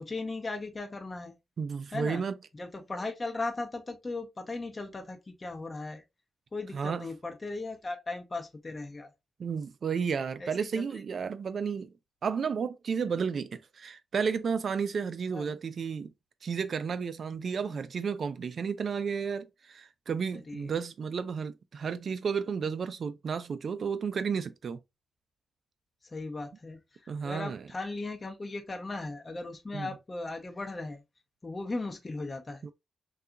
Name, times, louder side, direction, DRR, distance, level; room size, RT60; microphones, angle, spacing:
voice 1, 0.0-1.4 1.9-2.2 2.5-6.0 6.5-9.1 10.4-10.9 15.3-15.5 17.3-17.6 20.3-20.7 26.0-31.0 31.4-32.7, left 3 dB, 35° left, 0.6 m, -37 dB
voice 2, 1.6-2.4 6.7-7.1 9.4-11.9 12.2-16.1 16.4-24.8 27.1-27.6 29.7-29.9 32.6-32.7, right 6 dB, 60° right, 0.4 m, -32 dB
2.8 x 2.3 x 2.4 m
cardioid pair, 70°, 0 cm